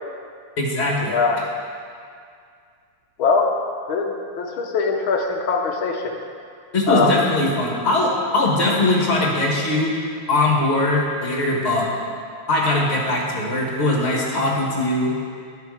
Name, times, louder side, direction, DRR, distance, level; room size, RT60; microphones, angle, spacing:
voice 1, 0.6-1.2 6.7-9.9 10.3-11.9 12.5-15.1, left 2 dB, 30° left, -2 dB, 1.7 m, -21 dB
voice 2, 1.1-1.4 3.2-3.5 3.9-6.1 6.9-7.2, left 4 dB, 75° left, 2 dB, 1.6 m, -21 dB
12.0 x 6.6 x 4.8 m, 2.2 s
omnidirectional pair, 2.4 m